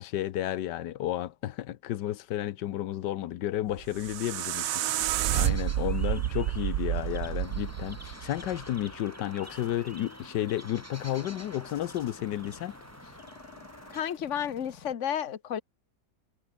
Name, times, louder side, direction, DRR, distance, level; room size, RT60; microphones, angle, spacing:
voice 1, 0.0-12.7, left 13 dB, 90° left, 1.4 m, -32 dB
sound 1, 3.7-8.8, right 13 dB, 65° right, 0.9 m, -30 dB
sound 2, 4.3-14.0, equal, 10° right, 6.3 m, -47 dB
sound 3, 6.9-14.9, left 5 dB, 65° left, 2.6 m, -53 dB
voice 2, 13.9-15.6, left 9 dB, 50° left, 1.4 m, -32 dB
omnidirectional pair, 1.8 m